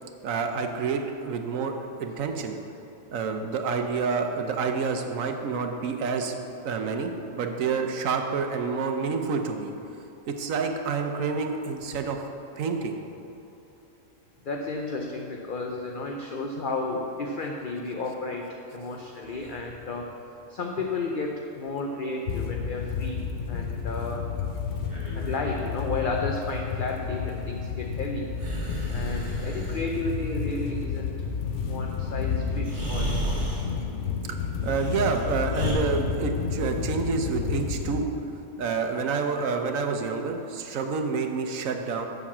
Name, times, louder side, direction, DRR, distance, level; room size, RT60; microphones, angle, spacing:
voice 1, 0.2-2.6 3.1-6.4 6.6-9.7 10.3-12.2 12.6-13.0 34.6-38.1 38.6-42.1, right 5 dB, 80° right, 5 dB, 1.2 m, -28 dB
voice 2, 14.4-20.1 20.5-23.2 23.5-24.3 25.1-28.3 28.9-31.1 31.7-33.4, left 3 dB, 50° left, 1 dB, 0.7 m, -32 dB
sound 1, 22.3-38.0, left 6 dB, 70° left, 1.1 m, -31 dB
Breathing, 24.8-25.7 28.4-29.9 32.0-32.1 32.6-33.7 34.6-35.7, right 2 dB, 35° right, 2.2 m, -34 dB
7.4 x 6.6 x 7.2 m, 2.9 s
omnidirectional pair, 1.4 m